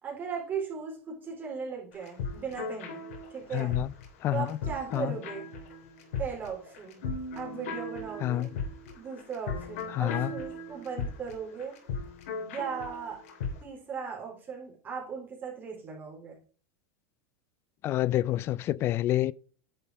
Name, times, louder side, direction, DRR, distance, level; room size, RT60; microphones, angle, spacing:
voice 1, 0.0-3.0 3.3-3.8 4.3-5.5 6.2-7.1 7.4-8.5 9.0-11.7 12.4-13.2 13.6-16.4, right 6 dB, 20° right, 3.8 m, -37 dB
sound 1, 1.9-13.6, left 4 dB, 70° left, 3.0 m, -38 dB
voice 2, 3.5-3.9 4.2-4.6 4.9-5.2 8.2-8.5 9.9-10.3 17.8-19.3, left 14 dB, 30° left, 0.4 m, -28 dB
10.0 x 5.6 x 4.7 m
supercardioid pair, 145°, 8 cm